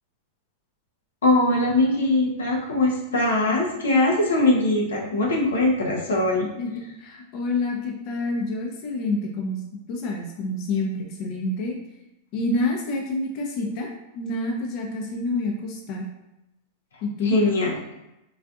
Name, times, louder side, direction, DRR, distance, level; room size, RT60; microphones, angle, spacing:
voice 1, 1.2-6.5 17.2-17.8, left 2 dB, 85° left, -1 dB, 0.7 m, -21 dB
voice 2, 7.0-9.6 9.9-11.8 12.3-16.1 17.0-17.4, left 2 dB, 50° left, 1 dB, 0.7 m, -28 dB
3.9 x 2.4 x 2.3 m, 0.93 s
hypercardioid pair, 110°, 0 cm